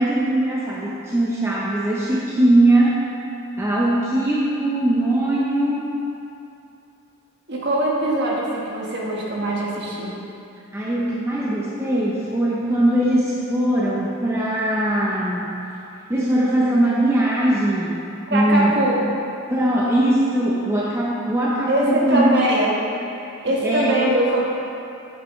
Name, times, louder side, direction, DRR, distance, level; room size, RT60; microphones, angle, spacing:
voice 1, 0.0-3.0 3.6-5.9 10.7-15.6 16.1-18.0 18.3-18.8 19.5-22.4 23.2-23.9, right 1 dB, 10° right, -6 dB, 0.6 m, -20 dB
voice 2, 7.5-10.1 18.3-19.2 21.7-22.7 23.4-24.4, right 1 dB, 50° right, -4 dB, 1.4 m, -22 dB
8.5 x 8.0 x 3.1 m, 2.6 s
head